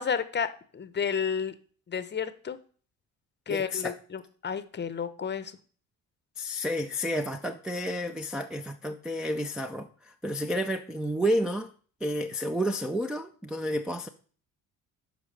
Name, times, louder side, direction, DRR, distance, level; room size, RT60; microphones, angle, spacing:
voice 1, 0.0-1.5 1.9-2.6 3.5-5.5, left 7 dB, 25° left, 13 dB, 0.7 m, -31 dB
voice 2, 3.5-4.0 6.4-11.7 12.0-14.1, equal, ahead, 2 dB, 0.3 m, -30 dB
11.5 x 5.1 x 3.3 m, 0.43 s
figure-of-eight pair, 50°, 47 cm